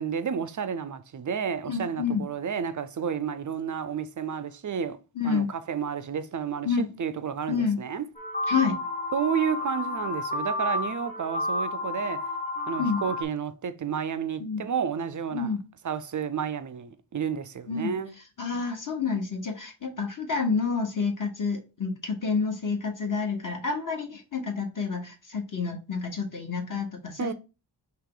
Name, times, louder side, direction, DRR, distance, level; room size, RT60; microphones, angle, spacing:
voice 1, 0.0-5.0 5.2-8.0 9.1-12.2 12.7-15.5 15.8-18.2 27.2-27.3, right 7 dB, 40° right, 0.4 m, -31 dB
voice 2, 1.7-2.2 5.2-5.5 6.6-6.9 7.5-7.8 8.5-8.7 12.8-13.0 14.4-14.6 15.3-15.6 17.7-17.9 18.4-27.3, left 5 dB, 40° left, 1.1 m, -29 dB
sound 1, 8.2-13.2, left 2 dB, 15° left, 0.8 m, -31 dB
4.7 x 2.9 x 3.8 m
wide cardioid pair, 90°, 47 cm